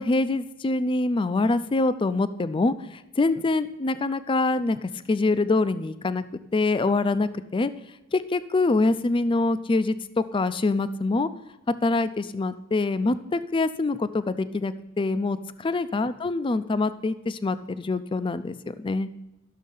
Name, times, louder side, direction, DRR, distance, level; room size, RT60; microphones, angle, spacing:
voice 1, 0.0-2.7 3.2-6.2 6.5-7.7 8.1-11.3 11.8-19.1, left 3 dB, 25° left, 13 dB, 0.4 m, -25 dB
12.0 x 6.4 x 5.4 m, 0.91 s
head